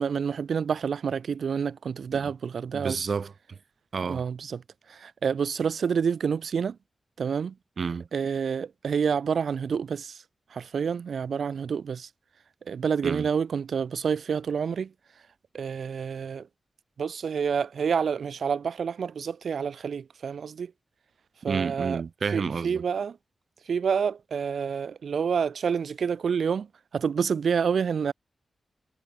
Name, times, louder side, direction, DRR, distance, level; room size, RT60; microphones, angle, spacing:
voice 1, 0.0-3.0 4.0-4.6 4.9-6.8 7.2-7.5 8.1-10.2 10.5-12.1 12.7-14.9 15.5-16.5 17.0-20.7 21.4-22.0 22.3-23.2 23.7-26.7 26.9-28.1, right 6 dB, 80° right, 1.3 m, -28 dB
voice 2, 2.7-3.6 3.9-4.2 7.8-8.1 13.0-13.3 21.5-22.8, right 5 dB, 55° right, 1.8 m, -30 dB
wide cardioid pair, 160°, 0 cm